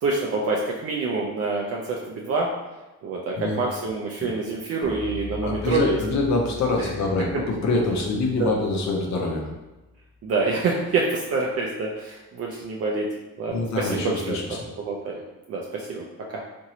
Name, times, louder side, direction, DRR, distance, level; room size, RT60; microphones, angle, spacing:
voice 1, 0.0-2.5 3.0-6.0 6.8-6.9 8.4-8.5 10.2-13.1 13.4-14.4 14.8-15.2 15.5-16.0 16.3-16.4, right 3 dB, 50° right, -2 dB, 0.5 m, -26 dB
sound 1, 4.8-10.8, left 3 dB, 15° left, 0.5 m, -41 dB
voice 2, 5.4-9.5 13.5-14.4, left 3 dB, 65° left, 0 dB, 0.7 m, -25 dB
2.9 x 2.6 x 2.8 m, 1.1 s
cardioid pair, 90°, 30 cm